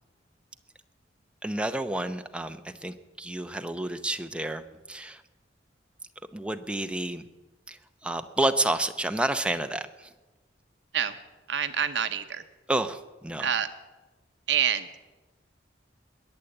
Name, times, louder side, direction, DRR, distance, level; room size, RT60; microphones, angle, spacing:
voice 1, 1.4-5.2 6.3-7.2 7.7-10.1 12.7-13.5, right 1 dB, 5° right, 7 dB, 0.7 m, -30 dB
voice 2, 11.5-12.4 13.4-13.7 14.5-14.9, right 8 dB, 70° right, 9 dB, 0.8 m, -26 dB
21.5 x 8.4 x 7.9 m, 1.2 s
head